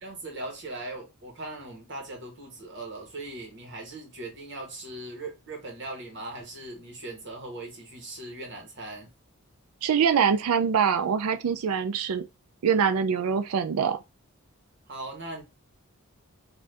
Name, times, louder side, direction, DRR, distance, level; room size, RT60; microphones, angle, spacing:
voice 1, 0.0-9.1 14.9-15.4, right 2 dB, 55° right, 1.1 m, -39 dB
voice 2, 9.8-12.2 12.6-14.0, right 7 dB, 80° right, 0.4 m, -24 dB
2.6 x 2.5 x 3.3 m
head